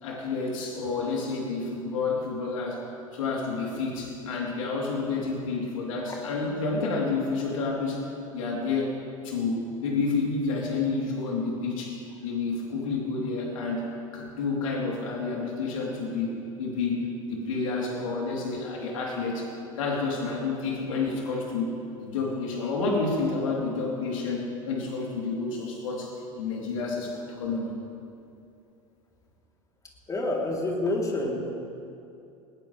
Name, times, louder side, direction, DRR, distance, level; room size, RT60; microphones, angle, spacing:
voice 1, 0.0-2.8 3.1-9.0 9.2-19.5 19.8-27.8, left 4 dB, 65° left, -2 dB, 3.9 m, -30 dB
voice 2, 30.1-31.4, left 2 dB, 20° left, -2 dB, 3.7 m, -28 dB
20.0 x 19.5 x 3.5 m, 2.6 s
figure-of-eight pair, 75°, 18 cm